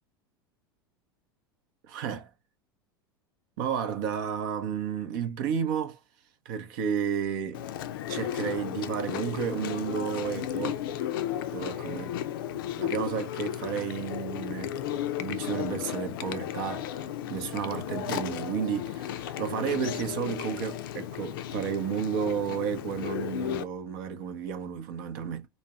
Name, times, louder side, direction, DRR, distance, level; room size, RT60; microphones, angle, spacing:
voice 1, 1.9-2.3 3.6-6.0 6.5-7.7 8.1-10.8 11.5-12.1 12.8-14.7 15.2-16.9 17.3-25.5, right 7 dB, 55° right, 0.6 m, -32 dB
Chewing mastication, 7.5-23.6, left 11 dB, 65° left, 0.4 m, -34 dB
4.1 x 2.1 x 2.3 m
figure-of-eight pair, 80°, 13 cm